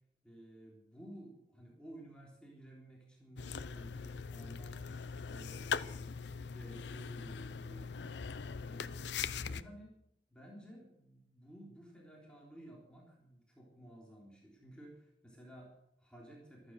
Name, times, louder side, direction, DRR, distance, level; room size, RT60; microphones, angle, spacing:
voice 1, 0.2-8.2 8.6-9.9 10.3-16.7, right 1 dB, 5° left, -3 dB, 3.6 m, -54 dB
sound 1, 3.4-9.6, left 6 dB, 85° left, 0.7 m, -41 dB
14.5 x 13.5 x 6.5 m, 0.79 s
head